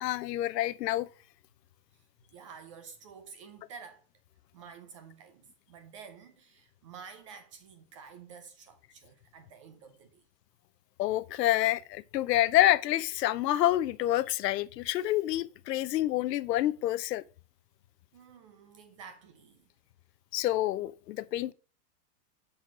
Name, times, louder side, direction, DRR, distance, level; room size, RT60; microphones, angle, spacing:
voice 1, 0.0-1.1 11.0-17.2 20.3-21.5, left 14 dB, 80° left, 0.6 m, -28 dB
voice 2, 2.3-4.0 4.5-10.2 18.1-19.7, right 6 dB, 25° right, 0.3 m, -50 dB
6.1 x 4.2 x 6.0 m
hypercardioid pair, 125°, 48 cm